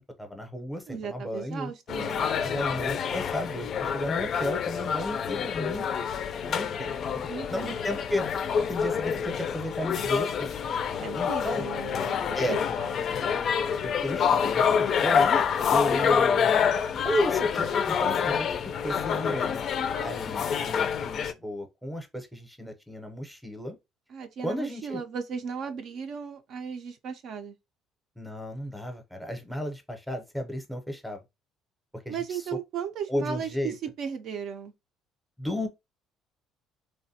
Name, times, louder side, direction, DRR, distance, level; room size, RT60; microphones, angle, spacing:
voice 1, 0.0-1.7 2.4-5.9 6.5-6.9 7.5-10.5 11.1-11.7 12.3-12.6 13.8-16.5 17.0-19.6 20.0-23.8 24.4-25.0 28.2-31.2 31.9-32.4 33.1-33.7 35.4-35.7, left 1 dB, ahead, 0.6 m, -33 dB
voice 2, 0.9-2.3 7.3-7.8 11.0-13.0 24.1-27.6 32.1-34.7, right 7 dB, 60° right, 0.4 m, -36 dB
sound 1, 1.9-21.3, left 7 dB, 50° left, 0.3 m, -27 dB
3.2 x 2.1 x 2.7 m
cardioid pair, 110°, 0 cm